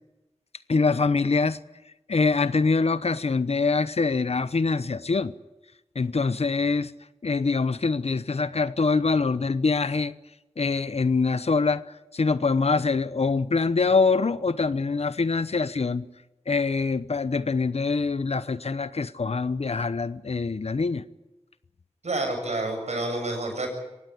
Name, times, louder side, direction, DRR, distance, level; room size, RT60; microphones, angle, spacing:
voice 1, 0.7-1.6 2.1-5.3 5.9-6.9 7.2-10.1 10.6-11.8 12.1-16.1 16.5-21.0, left 4 dB, 65° left, 0.9 m, -24 dB
voice 2, 22.0-23.7, right 2 dB, 80° right, 7.5 m, -28 dB
23.5 x 17.5 x 8.6 m
wide cardioid pair, 45°, 12 cm